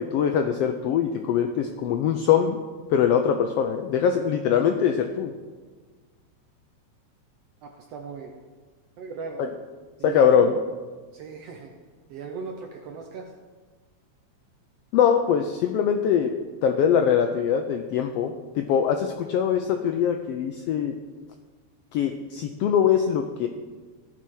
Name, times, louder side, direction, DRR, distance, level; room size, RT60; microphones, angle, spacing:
voice 1, 0.0-2.6 2.9-5.3 9.4-9.5 10.0-10.5 14.9-16.3 16.6-20.9 21.9-23.5, left 8 dB, 90° left, 5 dB, 1.3 m, -22 dB
voice 2, 7.6-8.3 9.0-9.4 10.0-10.5 11.1-11.7 12.1-13.3, right 5 dB, 70° right, 2 dB, 1.6 m, -38 dB
15.5 x 5.7 x 4.8 m, 1.4 s
omnidirectional pair, 3.4 m